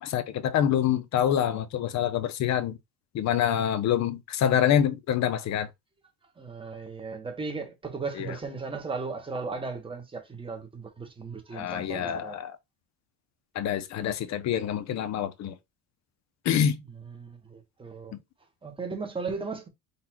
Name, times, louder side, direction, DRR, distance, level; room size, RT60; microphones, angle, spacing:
voice 1, 0.0-2.8 3.1-5.7 8.2-8.3 11.5-12.6 13.5-15.6 16.4-16.8, left 9 dB, 50° left, 0.8 m, -26 dB
voice 2, 6.4-12.4 17.0-18.2 18.6-19.7, right 4 dB, 15° right, 1.2 m, -36 dB
4.1 x 2.5 x 4.4 m
cardioid pair, 125°, 35 cm